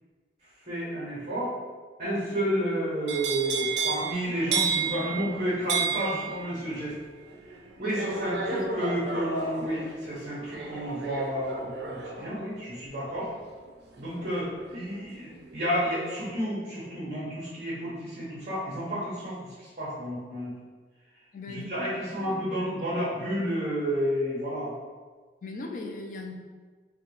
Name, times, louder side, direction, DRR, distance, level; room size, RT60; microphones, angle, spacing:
voice 1, 0.7-1.5 2.0-7.0 7.8-13.3 14.0-20.5 21.5-24.7, equal, 40° right, -10 dB, 0.9 m, -31 dB
sound 1, 3.1-15.0 15.4-15.8, right 5 dB, 70° right, 0.5 m, -33 dB
voice 2, 7.8-8.2 8.5-9.0 21.3-21.9 22.2-22.6 25.4-26.3, left 2 dB, 50° left, 2 dB, 0.4 m, -39 dB
3.9 x 2.2 x 3.0 m, 1.4 s
head